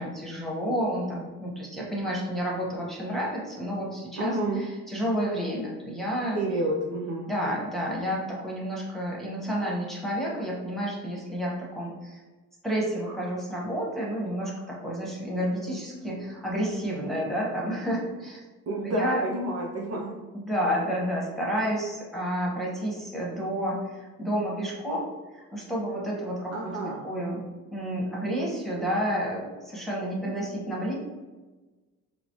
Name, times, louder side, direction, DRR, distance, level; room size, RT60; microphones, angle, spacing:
voice 1, 0.0-6.4 7.2-12.2 12.6-18.4 18.8-19.2 20.3-25.1 25.3-27.4 27.7-30.9, equal, ahead, -5 dB, 1.3 m, -30 dB
voice 2, 4.2-4.6 6.3-7.3 18.7-20.2 26.5-27.0, right 1 dB, 45° right, -3 dB, 0.7 m, -29 dB
4.0 x 2.0 x 3.0 m, 1.2 s
supercardioid pair, 75°, 37 cm